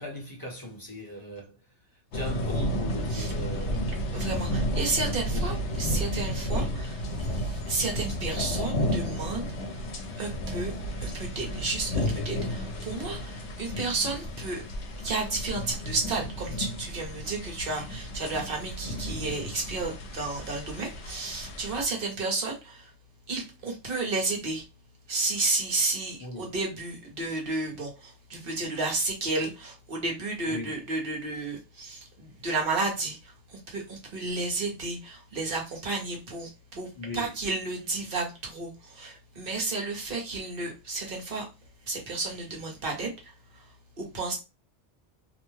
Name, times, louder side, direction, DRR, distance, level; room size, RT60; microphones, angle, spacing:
voice 1, 0.0-1.6 2.1-3.9 5.3-5.4 26.2-26.5 30.5-30.7 37.0-37.3, left 1 dB, 20° left, 0.9 m, -38 dB
sound 1, 2.1-21.9, equal, 75° left, 1.0 m, -32 dB
voice 2, 4.1-9.9 10.2-14.6 15.0-22.9 23.3-24.6 25.1-41.5 41.9-43.7 44.0-44.4, right 3 dB, 55° right, 1.1 m, -32 dB
2.7 x 2.1 x 3.1 m
omnidirectional pair, 1.2 m